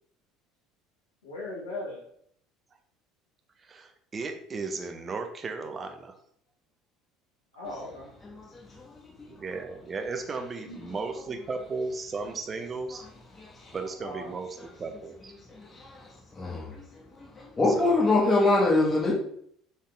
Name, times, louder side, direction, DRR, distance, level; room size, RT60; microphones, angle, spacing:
voice 1, 1.2-2.0 7.5-8.1 10.7-11.2 14.0-14.3, left 2 dB, 90° left, -6 dB, 1.4 m, -39 dB
voice 2, 3.6-6.1 9.3-13.1 13.7-15.3 17.8-18.0, right 4 dB, 35° right, 6 dB, 0.7 m, -35 dB
voice 3, 15.5-16.0 16.4-16.7 17.2-19.1, left 2 dB, 25° left, -2 dB, 1.5 m, -24 dB
4.0 x 3.5 x 3.3 m, 0.67 s
hypercardioid pair, 65°, 0 cm